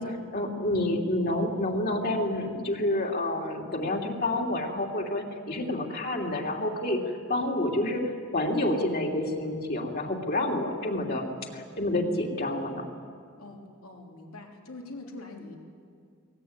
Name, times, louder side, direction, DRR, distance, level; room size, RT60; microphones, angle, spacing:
voice 1, 0.3-7.0 7.3-8.0 8.3-11.3 11.5-12.8, left 1 dB, 45° left, -1 dB, 3.0 m, -28 dB
voice 2, 13.4-15.6, left 2 dB, 80° left, 0 dB, 3.3 m, -44 dB
22.5 x 19.5 x 9.6 m, 2.2 s
head